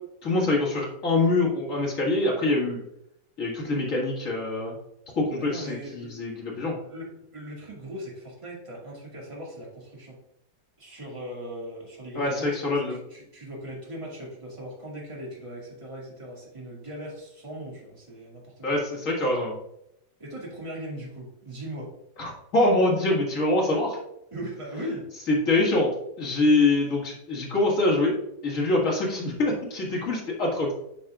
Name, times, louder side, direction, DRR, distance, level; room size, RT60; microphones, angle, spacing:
voice 1, 0.2-2.8 3.4-4.8 5.2-6.8 12.1-13.0 18.6-19.5 22.2-24.0 25.3-25.9 26.2-28.2 28.4-30.7, left 2 dB, 50° left, -3 dB, 2.4 m, -24 dB
voice 2, 5.4-6.2 6.8-7.0 7.3-10.2 10.8-18.8 20.2-21.9 24.3-25.1, equal, 20° right, -4 dB, 2.1 m, -39 dB
8.4 x 5.6 x 2.4 m, 0.79 s
omnidirectional pair, 1.8 m